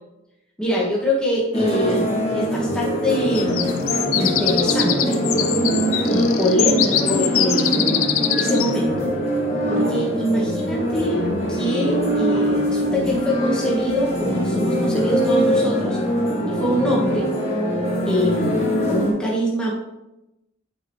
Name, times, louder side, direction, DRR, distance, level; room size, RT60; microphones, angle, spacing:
voice 1, 0.6-3.7 4.1-5.3 6.1-9.1 9.7-11.2 11.5-16.0 16.5-17.3 18.1-19.7, equal, 5° left, -5 dB, 1.2 m, -24 dB
sound 1, 1.5-19.1, equal, 30° left, 1.5 m, -22 dB
sound 2, 3.3-8.7, left 10 dB, 70° left, 0.6 m, -23 dB
8.9 x 4.9 x 3.1 m, 0.92 s
head